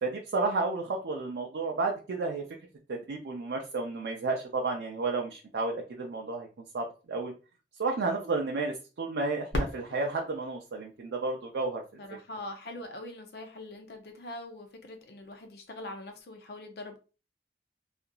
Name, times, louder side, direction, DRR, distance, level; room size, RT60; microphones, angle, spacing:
voice 1, 0.0-2.4 2.9-6.5 6.7-7.3 7.8-12.0, right 3 dB, 75° right, 0.4 m, -32 dB
Fireworks, 9.5-12.3 13.0-13.1 13.7-14.2 16.1-16.2, left 1 dB, 80° left, 0.8 m, -38 dB
voice 2, 12.0-17.0, left 2 dB, 65° left, 0.5 m, -43 dB
2.8 x 2.4 x 2.2 m
head